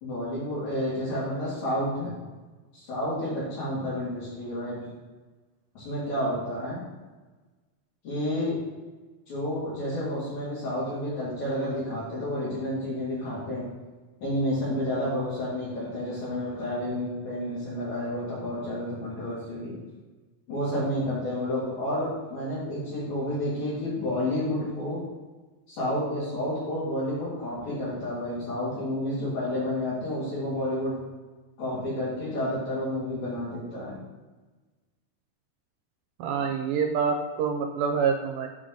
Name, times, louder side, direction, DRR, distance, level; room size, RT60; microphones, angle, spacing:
voice 1, 0.0-2.1 2.7-4.9 5.7-6.8 8.0-8.6 9.3-13.7 14.2-19.8 20.5-25.0 25.7-31.0 31.6-34.0, left 1 dB, 55° left, -12 dB, 3.4 m, -30 dB
voice 2, 36.2-38.5, right 6 dB, 80° right, 4 dB, 2.2 m, -26 dB
8.1 x 5.1 x 3.8 m, 1.3 s
omnidirectional pair, 4.3 m